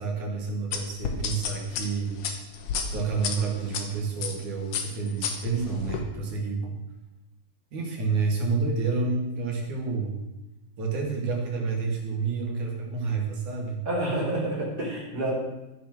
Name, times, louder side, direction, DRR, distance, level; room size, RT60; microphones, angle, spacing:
voice 1, 0.0-2.2 2.9-6.8 7.7-10.2 10.8-13.8, right 4 dB, 55° right, 0 dB, 3.4 m, -29 dB
sound 1, 0.7-3.8 4.2-4.4 4.7-6.0, left 6 dB, 65° left, 2.4 m, -31 dB
voice 2, 13.9-15.3, right 1 dB, 25° right, -5 dB, 4.0 m, -28 dB
12.0 x 8.2 x 6.2 m, 1.0 s
omnidirectional pair, 4.3 m